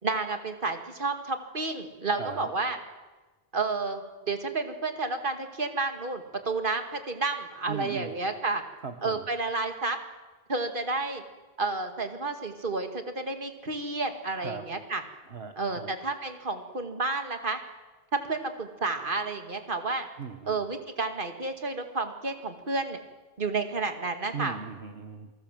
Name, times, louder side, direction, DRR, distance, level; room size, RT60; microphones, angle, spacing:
voice 1, 0.0-2.8 3.5-8.6 9.0-10.0 10.5-11.2 11.6-15.0 15.6-17.6 18.1-20.1 20.5-23.0 23.4-24.6, right 3 dB, 55° right, 6 dB, 2.3 m, -31 dB
voice 2, 2.2-2.5 7.7-8.2 8.8-9.3 14.4-14.6 15.3-15.9 20.2-20.6 24.3-25.3, right 5 dB, 85° right, 7 dB, 1.6 m, -38 dB
28.5 x 19.0 x 7.6 m, 1.2 s
omnidirectional pair, 1.0 m